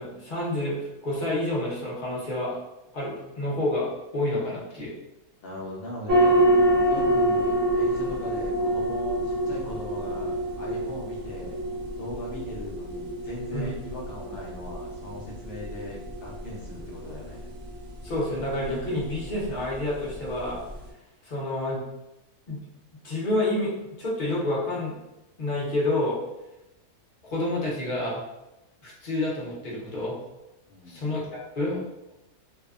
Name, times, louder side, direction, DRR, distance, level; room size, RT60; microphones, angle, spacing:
voice 1, 0.0-2.6 2.9-4.9 13.5-13.7 18.0-20.6 21.2-21.8 22.5-22.6 23.0-23.7 24.0-24.9 25.4-26.2 27.2-28.2 28.8-30.1 30.9-31.2 31.6-31.8, left 1 dB, 45° left, -5 dB, 0.6 m, -28 dB
voice 2, 5.4-6.3 6.9-11.6 12.0-17.4 30.7-31.0, left 1 dB, 90° left, -3 dB, 0.5 m, -39 dB
sound 1, 6.1-20.9, right 1 dB, 65° right, 0.8 m, -27 dB
2.7 x 2.1 x 2.4 m, 0.94 s
omnidirectional pair, 1.6 m